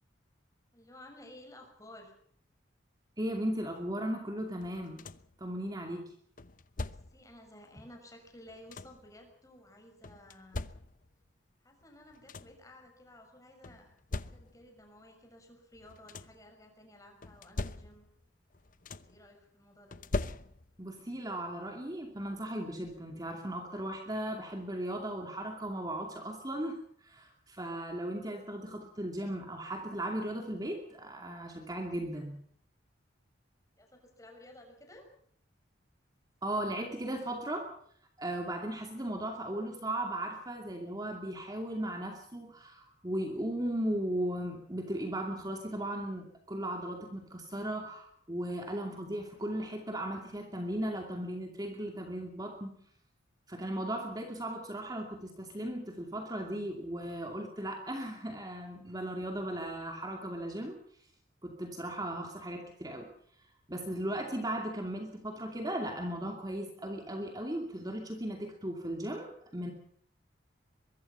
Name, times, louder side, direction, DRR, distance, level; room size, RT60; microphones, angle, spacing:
voice 1, 0.7-2.1 6.8-10.7 11.6-18.0 18.9-20.0 33.8-35.1, left 1 dB, 15° left, 3 dB, 6.3 m, -55 dB
voice 2, 3.2-5.0 5.4-6.0 20.8-32.4 36.4-37.7 38.2-52.7 53.5-60.8 61.4-63.1 63.7-69.7, right 1 dB, 20° right, 2 dB, 2.5 m, -37 dB
sound 1, 4.6-5.4 6.4-7.3 8.3-9.1 10.0-11.2 11.8-11.9 12.1-12.7 13.6-14.8 15.7-16.5 17.2-18.3 18.5-19.3 19.9-20.9 22.2-22.3 22.8-23.0, left 2 dB, 45° left, 0.9 m, -41 dB
23.5 x 22.5 x 5.7 m, 0.64 s
head